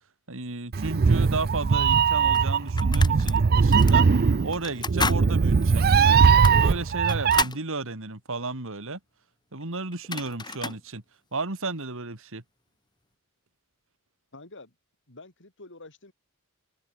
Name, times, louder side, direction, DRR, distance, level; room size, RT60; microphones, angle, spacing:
voice 1, 0.3-4.1 4.4-6.2 6.5-9.0 9.5-11.0 11.3-12.4, right 3 dB, 65° right, 2.7 m, -33 dB
Meow, 0.7-7.4, right 5 dB, 45° right, 0.5 m, -20 dB
sound 1, 1.6-1.7 2.3-3.4 3.7-4.0 4.5-5.2 5.6-5.7 6.3-7.6 9.6-9.7 9.9-10.8, left 4 dB, 20° left, 1.8 m, -32 dB
voice 2, 14.3-14.7 15.1-16.1, left 2 dB, 60° left, 5.3 m, -47 dB
head